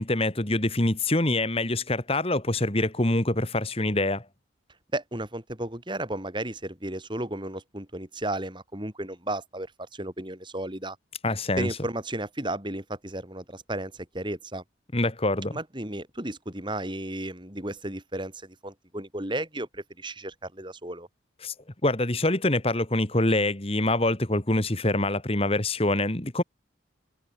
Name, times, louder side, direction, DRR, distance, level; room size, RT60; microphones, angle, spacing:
voice 1, 0.0-4.3 11.2-11.7 14.9-15.6 21.4-21.5 21.8-26.4, left 2 dB, 30° left, 2.0 m, -25 dB
voice 2, 4.9-11.0 11.6-14.6 15.5-21.1, right 1 dB, 25° right, 4.9 m, -34 dB
head